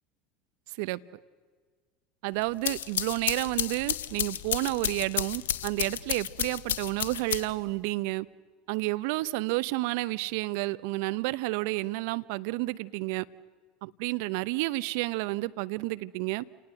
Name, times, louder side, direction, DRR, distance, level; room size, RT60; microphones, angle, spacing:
voice 1, 2.2-8.3 8.7-13.3 13.8-16.4, right 20 dB, 65° right, 16 dB, 0.7 m, -30 dB
sound 1, 2.4-7.7, left 10 dB, 80° left, 0.9 m, -32 dB
29.5 x 18.5 x 7.8 m, 1.5 s
hypercardioid pair, 80°, 0 cm